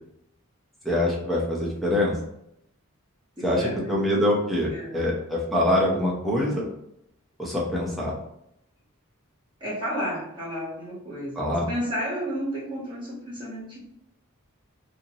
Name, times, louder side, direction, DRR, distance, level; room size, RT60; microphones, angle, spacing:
voice 1, 0.8-2.2 3.4-6.7 7.4-8.1 11.4-11.7, left 1 dB, ahead, -4 dB, 0.7 m, -24 dB
voice 2, 3.4-4.0 4.7-5.1 9.6-13.8, equal, 20° right, -7 dB, 1.1 m, -32 dB
2.8 x 2.6 x 2.9 m, 0.78 s
head